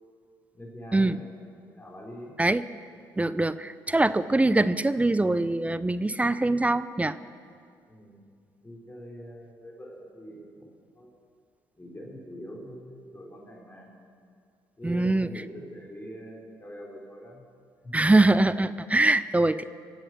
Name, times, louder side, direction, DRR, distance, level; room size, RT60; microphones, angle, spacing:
voice 1, 0.5-1.3 1.7-2.3 7.9-8.2 8.6-11.1 11.8-13.9 14.8-17.4 17.8-17.9, equal, 20° left, -2 dB, 4.2 m, -43 dB
voice 2, 3.2-7.2 14.8-15.3 17.9-19.6, right 2 dB, 15° right, 15 dB, 0.5 m, -23 dB
21.0 x 8.0 x 6.2 m, 2.2 s
hypercardioid pair, 55°, 10 cm